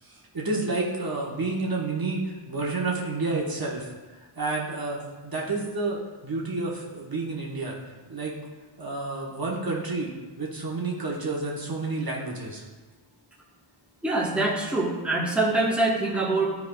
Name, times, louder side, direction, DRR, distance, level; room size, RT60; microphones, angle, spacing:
voice 1, 0.0-3.9 4.4-7.8 8.1-8.3 8.8-10.1 10.4-12.6, right 3 dB, 50° right, -3 dB, 1.3 m, -30 dB
voice 2, 14.0-16.6, right 2 dB, ahead, -4 dB, 1.1 m, -24 dB
10.5 x 4.7 x 2.3 m, 1.3 s
wide cardioid pair, 60°, 47 cm